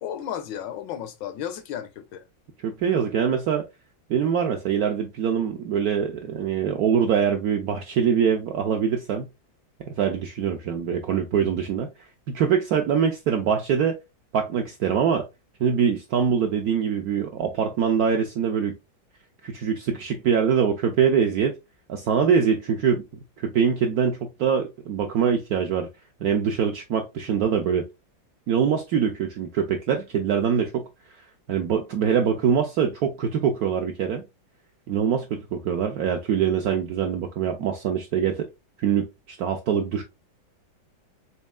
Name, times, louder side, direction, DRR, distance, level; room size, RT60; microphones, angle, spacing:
voice 1, 0.0-2.2, left 9 dB, 75° left, 1.2 m, -33 dB
voice 2, 2.6-3.7 4.1-9.3 9.9-11.9 12.3-14.0 14.3-15.3 15.6-18.8 19.4-21.6 21.9-23.0 23.4-25.9 26.2-27.9 28.5-30.9 31.5-34.2 34.9-38.5 38.8-40.0, right 7 dB, 75° right, 0.8 m, -23 dB
4.3 x 3.5 x 2.3 m
omnidirectional pair, 2.1 m